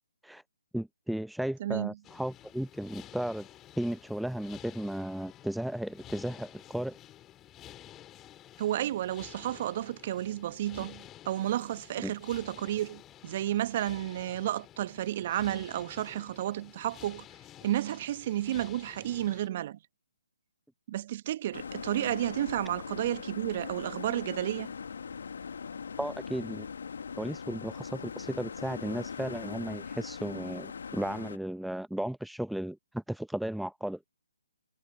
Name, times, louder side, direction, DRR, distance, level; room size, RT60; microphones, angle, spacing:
voice 1, 0.7-3.5 3.8-7.0 12.0-12.1 26.0-26.7 27.2-34.0, right 1 dB, ahead, 0.7 m, -35 dB
voice 2, 1.6-2.0 8.6-17.2 17.6-19.8 20.9-24.7, right 13 dB, 40° right, 1.4 m, -32 dB
sound 1, 2.0-19.5, left 13 dB, 15° left, 3.4 m, -52 dB
sound 2, 21.5-31.4, left 6 dB, 60° left, 1.6 m, -41 dB
figure-of-eight pair, 135°, 0 cm